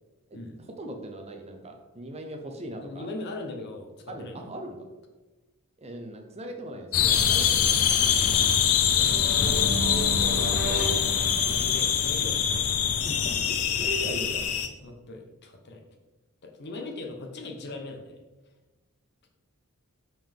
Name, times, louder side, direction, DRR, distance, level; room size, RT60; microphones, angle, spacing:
voice 1, 0.3-3.1 4.1-4.9 5.8-7.8 8.1-8.3 13.0-14.5, right 1 dB, 30° right, 3 dB, 0.7 m, -39 dB
voice 2, 2.8-4.4 8.9-10.6 11.4-12.5 14.8-15.8 16.4-18.2, left 2 dB, 50° left, 3 dB, 0.9 m, -39 dB
sound 1, 6.9-14.7, left 8 dB, 70° left, 0.5 m, -24 dB
sound 2, 8.9-12.0, right 2 dB, 45° right, 1.1 m, -34 dB
5.6 x 5.3 x 3.6 m, 1.2 s
head